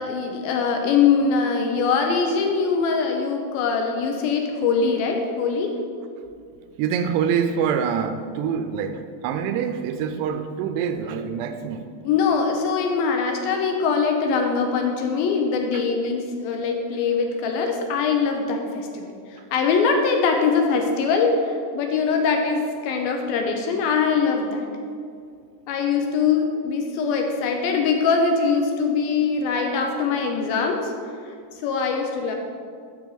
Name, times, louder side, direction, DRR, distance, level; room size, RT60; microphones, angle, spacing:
voice 1, 0.0-5.7 12.0-24.7 25.7-30.9 31.6-32.4, left 5 dB, 80° left, 3 dB, 2.2 m, -22 dB
voice 2, 6.8-11.9, right 7 dB, 85° right, 8 dB, 2.6 m, -25 dB
10.5 x 7.6 x 4.0 m, 2.3 s
omnidirectional pair, 4.9 m